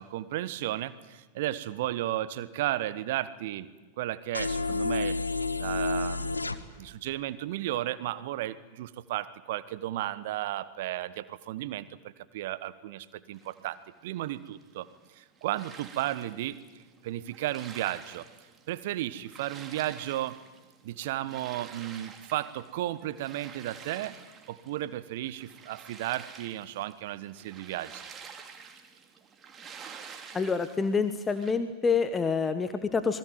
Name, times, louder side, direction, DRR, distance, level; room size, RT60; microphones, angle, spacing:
voice 1, 0.0-3.7 4.0-5.2 5.6-14.9 15.2-16.6 17.0-18.2 18.7-20.4 20.8-24.2 24.5-28.1, right 14 dB, 55° right, 16 dB, 1.3 m, -34 dB
sound 1, 4.3-6.6, left 3 dB, 80° left, 1.3 m, -29 dB
sound 2, 13.3-31.5, right 6 dB, 20° right, 2.9 m, -49 dB
voice 2, 30.3-33.2, left 5 dB, 15° left, 10 dB, 1.4 m, -27 dB
26.5 x 21.5 x 9.2 m, 1.2 s
figure-of-eight pair, 90°, 0 cm